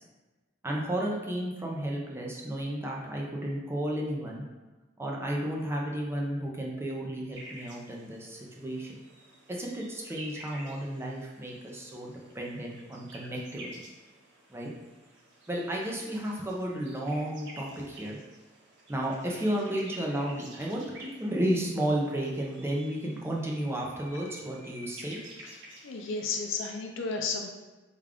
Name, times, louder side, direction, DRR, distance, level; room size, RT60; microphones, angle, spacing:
voice 1, 0.6-4.4 5.0-8.9 9.5-13.7 14.5-14.7 15.5-18.2 18.9-25.2, right 1 dB, 10° right, -2 dB, 0.4 m, -33 dB
sound 1, 7.3-26.7, right 1 dB, 60° right, 0.6 m, -50 dB
voice 2, 25.8-27.5, left 4 dB, 70° left, 2 dB, 0.5 m, -33 dB
3.5 x 2.3 x 3.5 m, 1.2 s
head